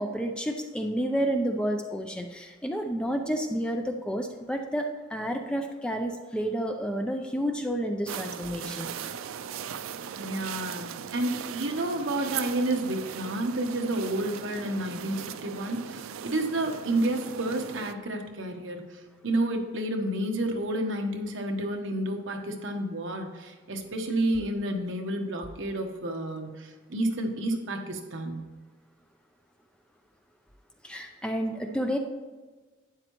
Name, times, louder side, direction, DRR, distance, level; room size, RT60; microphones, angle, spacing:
voice 1, 0.0-8.9 30.8-32.0, equal, 5° left, 4 dB, 0.5 m, -30 dB
sound 1, 8.1-17.9, right 8 dB, 90° right, 0.4 m, -38 dB
voice 2, 10.2-10.9 11.1-18.8 19.2-28.4, right 1 dB, 70° right, 3 dB, 1.1 m, -30 dB
12.0 x 9.0 x 3.0 m, 1.3 s
head